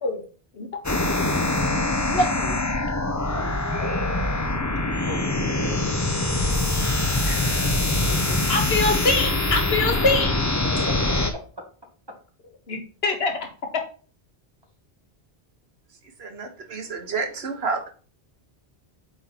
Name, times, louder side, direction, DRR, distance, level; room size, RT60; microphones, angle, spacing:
sound 1, 0.8-11.3, left 2 dB, 20° left, 0.6 m, -24 dB
voice 1, 2.0-2.6 8.5-10.3 12.7-13.4, left 2 dB, 75° left, 4 dB, 1.6 m, -24 dB
voice 2, 3.3-4.1 4.8-8.6 10.9-11.2, equal, 25° right, 2 dB, 1.7 m, -39 dB
voice 3, 16.2-17.9, right 4 dB, 85° right, 6 dB, 1.4 m, -30 dB
7.8 x 4.4 x 4.1 m, 0.38 s
omnidirectional pair, 1.0 m